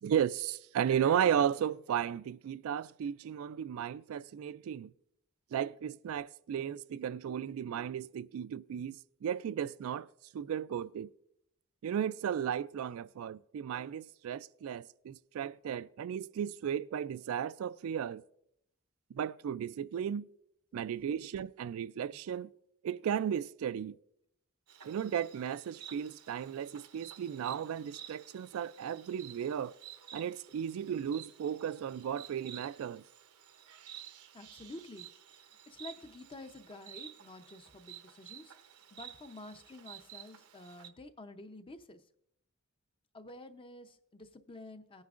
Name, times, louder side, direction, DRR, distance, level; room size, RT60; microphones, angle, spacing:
voice 1, 0.0-4.9 5.5-10.1 10.3-11.1 11.8-18.2 19.1-20.3 20.7-22.5 22.8-24.0 24.8-29.7 30.1-33.0, right 9 dB, 65° right, 0.3 m, -35 dB
voice 2, 20.7-21.1 34.3-35.1 35.3-38.5 38.9-42.1 43.1-45.0, left 2 dB, 25° left, 0.6 m, -50 dB
Insect, 24.7-40.9, right 10 dB, 85° right, 0.8 m, -52 dB
18.5 x 9.5 x 2.5 m
head